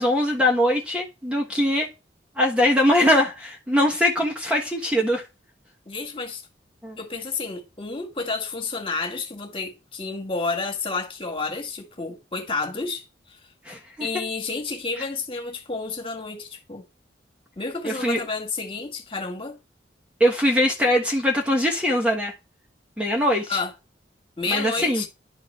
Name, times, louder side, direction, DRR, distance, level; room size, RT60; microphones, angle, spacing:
voice 1, 0.0-1.9 2.4-5.2 6.8-7.0 13.6-14.1 15.0-15.1 17.8-18.2 20.2-22.3 23.0-23.6 24.5-25.0, left 1 dB, 5° right, 1.3 m, -22 dB
voice 2, 5.9-6.4 7.0-13.4 14.0-16.9 17.6-19.6 23.5-23.7 24.4-25.1, left 4 dB, 30° left, 2.0 m, -30 dB
11.0 x 4.0 x 5.7 m
head